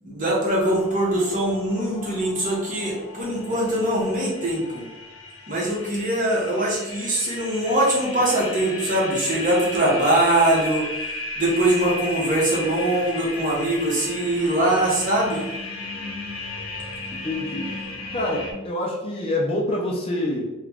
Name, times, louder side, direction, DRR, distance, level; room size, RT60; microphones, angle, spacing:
voice 1, 0.0-4.9 5.5-10.9 11.4-15.4, right 1 dB, 35° right, -4 dB, 0.9 m, -22 dB
sound 1, 0.6-18.5, left 2 dB, 75° left, 0.7 m, -35 dB
voice 2, 17.1-17.7 18.1-20.4, left 1 dB, 25° left, -2 dB, 0.4 m, -26 dB
3.0 x 2.4 x 3.4 m, 1.1 s
head